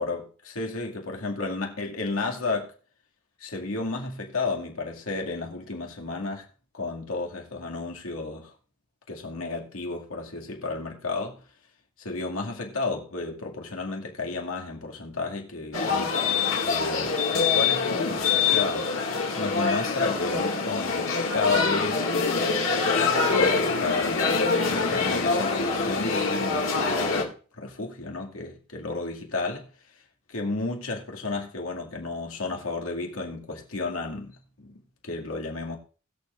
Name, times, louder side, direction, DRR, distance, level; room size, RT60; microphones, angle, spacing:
voice 1, 0.0-2.7 3.4-6.4 6.7-8.5 9.1-11.4 12.0-24.2 24.7-29.7 30.3-35.8, left 3 dB, 80° left, 2.3 m, -32 dB
sound 1, 15.7-27.2, left 4 dB, 65° left, 2.3 m, -25 dB
20.5 x 7.0 x 2.5 m
head